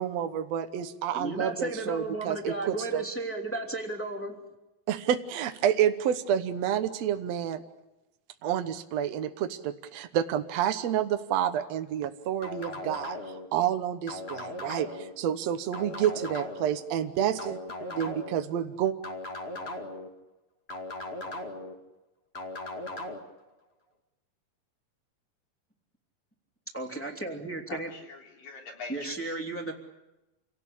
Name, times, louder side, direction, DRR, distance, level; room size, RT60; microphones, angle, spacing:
voice 1, 0.0-2.5 2.9-3.0 4.9-7.6 8.4-13.2 13.5-18.9, right 10 dB, 80° right, 8 dB, 1.5 m, -29 dB
voice 2, 1.1-4.4 26.7-27.9 28.9-29.7, right 2 dB, 5° left, 2 dB, 2.2 m, -34 dB
sound 1, 12.4-13.5 14.1-15.1 15.7-16.8 17.4-18.4 19.0-20.1 20.7-21.7 22.3-23.2, left 1 dB, 30° left, 1.2 m, -38 dB
voice 3, 27.7-29.3, left 3 dB, 60° left, 0 dB, 5.2 m, -43 dB
28.0 x 18.0 x 8.5 m, 0.99 s
omnidirectional pair, 4.6 m